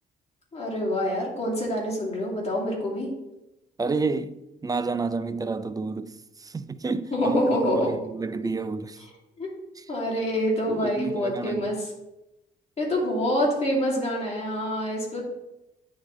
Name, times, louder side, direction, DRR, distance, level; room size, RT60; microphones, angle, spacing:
voice 1, 0.5-3.1 7.1-7.9 9.0-9.1 9.4-9.5 9.9-11.9 12.8-15.2, equal, 30° left, 2.3 m, -26 dB
voice 2, 3.8-4.4 4.6-6.1 6.4-7.4 7.7-9.0 10.7-11.7, right 4 dB, 20° right, 0.3 m, -29 dB
9.4 x 3.9 x 3.1 m
cardioid pair, 90°, 20 cm